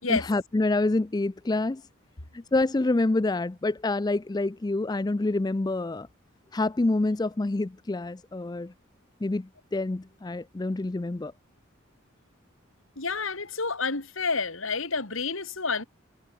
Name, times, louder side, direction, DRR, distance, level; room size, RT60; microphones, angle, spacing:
voice 1, 0.1-1.8 2.5-6.1 6.5-8.7 9.2-11.3, left 2 dB, 20° left, 0.4 m, -27 dB
voice 2, 13.0-15.8, left 4 dB, 75° left, 3.0 m, -29 dB
head